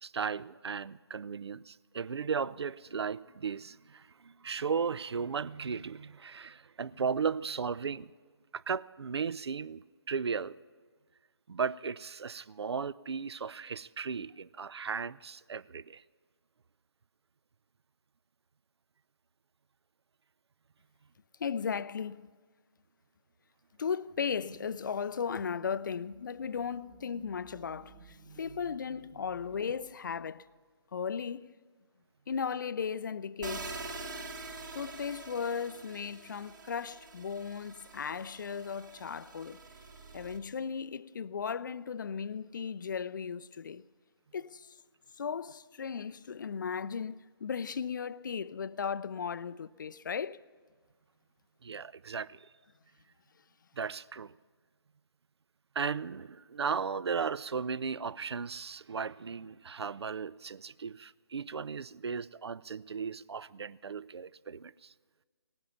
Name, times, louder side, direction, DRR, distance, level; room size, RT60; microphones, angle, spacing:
voice 1, 0.0-8.1 8.5-10.6 11.5-16.0 51.6-52.5 53.8-54.3 55.8-64.9, right 6 dB, 70° right, 0.4 m, -36 dB
voice 2, 21.4-22.3 23.8-30.5 30.9-31.5 32.3-33.7 34.7-39.6 40.1-43.8 44.3-44.8 45.2-50.4, left 6 dB, 45° left, 0.4 m, -36 dB
sound 1, 24.1-30.5, right 5 dB, 20° right, 1.6 m, -56 dB
sound 2, 33.4-40.4, right 3 dB, 45° right, 1.5 m, -45 dB
18.5 x 10.5 x 7.0 m
figure-of-eight pair, 150°, 14 cm